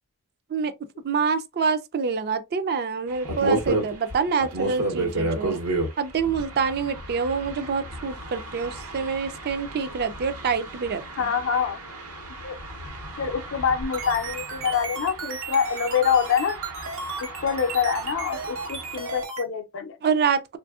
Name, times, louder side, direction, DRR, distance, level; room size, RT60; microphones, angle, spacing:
voice 1, 1.0-5.6 6.0-11.3 20.0-20.6, right 5 dB, 45° right, 0.4 m, -26 dB
sound 1, 3.1-19.2, right 2 dB, 90° right, 1.1 m, -33 dB
voice 2, 11.2-11.8 12.4-12.6 13.2-16.6 17.4-20.0, left 7 dB, 60° left, 0.5 m, -25 dB
sound 2, 13.7-19.4, right 4 dB, 65° right, 1.0 m, -34 dB
3.4 x 2.5 x 2.3 m
head